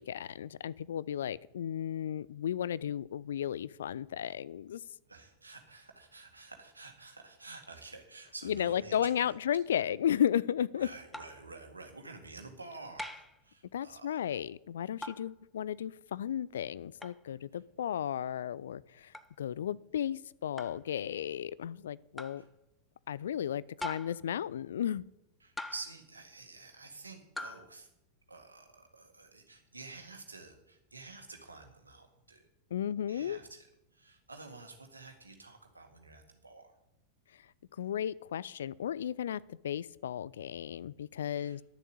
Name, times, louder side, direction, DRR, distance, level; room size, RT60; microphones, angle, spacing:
voice 1, 0.0-4.8 8.4-10.9 13.7-22.4 23.1-25.1 32.7-33.4 37.8-41.6, left 10 dB, 65° left, 20 dB, 0.3 m, -34 dB
voice 2, 5.1-9.4 9.7-9.8 10.8-14.2 22.4-22.5 25.4-27.9 28.3-32.4 33.1-33.7 33.9-36.7 41.4-41.6, right 3 dB, 80° right, 5 dB, 1.9 m, -49 dB
sound 1, 11.1-11.5 13.0-13.4 15.0-15.3 17.0-17.2 19.1-19.3 20.6-20.8 22.2-22.4 23.8-24.3 25.6-26.0 27.4-27.7, left 1 dB, 5° left, 0.8 m, -42 dB
11.0 x 7.2 x 8.2 m, 0.86 s
figure-of-eight pair, 90°, 0 cm